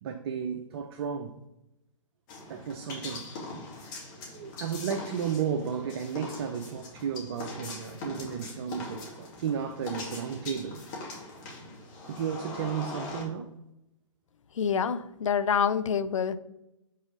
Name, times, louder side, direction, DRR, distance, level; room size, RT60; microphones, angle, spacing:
voice 1, 0.0-1.4 2.5-3.3 3.8-4.0 4.3-10.8 12.0-13.5, right 7 dB, 50° right, 0.6 m, -33 dB
sound 1, 2.3-13.2, left 3 dB, 40° left, 2.2 m, -41 dB
voice 2, 14.6-16.4, left 7 dB, 70° left, 0.5 m, -27 dB
5.6 x 4.0 x 5.3 m
hypercardioid pair, 130°, 17 cm